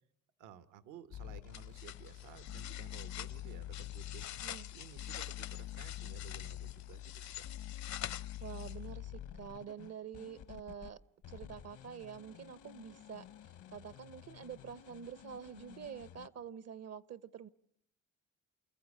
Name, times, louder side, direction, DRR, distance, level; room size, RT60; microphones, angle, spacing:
voice 1, 0.4-7.5, right 9 dB, 85° right, 12 dB, 1.3 m, -55 dB
sound 1, 1.1-10.9 11.2-16.3, left 13 dB, 80° left, 1.2 m, -47 dB
sound 2, 1.5-9.0, left 11 dB, 65° left, 0.8 m, -47 dB
voice 2, 8.4-11.0 11.3-17.5, right 7 dB, 55° right, 18 dB, 0.8 m, -47 dB
29.0 x 14.5 x 8.4 m, 0.75 s
cardioid pair, 90°, 30 cm